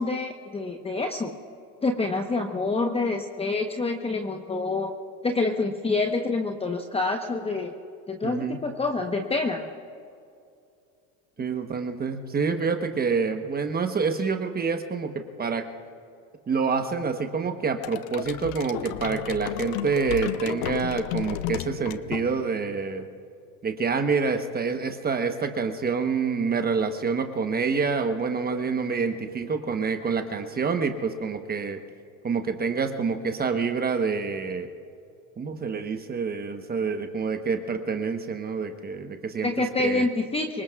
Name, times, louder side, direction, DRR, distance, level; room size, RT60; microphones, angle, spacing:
voice 1, 0.0-1.4 1.8-4.9 5.2-7.7 8.1-9.7 39.4-40.6, left 3 dB, 15° left, 4 dB, 1.0 m, -27 dB
voice 2, 8.2-8.6 11.4-15.7 16.5-23.1 23.6-31.8 32.2-34.7 35.4-40.1, right 5 dB, 20° right, 6 dB, 1.1 m, -27 dB
sound 1, 17.8-22.7, left 12 dB, 70° left, 0.8 m, -33 dB
26.5 x 18.5 x 2.4 m, 2.5 s
supercardioid pair, 115°, 42 cm